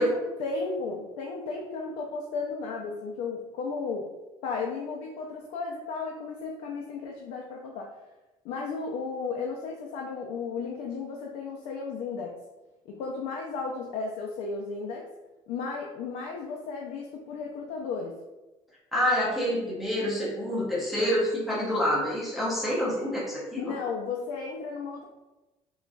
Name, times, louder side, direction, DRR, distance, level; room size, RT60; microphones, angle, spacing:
voice 1, 0.0-4.0 4.4-7.9 8.4-12.3 12.9-15.1 15.5-18.1 23.6-25.0, left 4 dB, 85° left, 0 dB, 0.5 m, -34 dB
voice 2, 18.9-23.7, equal, ahead, -8 dB, 0.8 m, -27 dB
3.8 x 3.0 x 2.3 m, 1.1 s
cardioid pair, 170°, 12 cm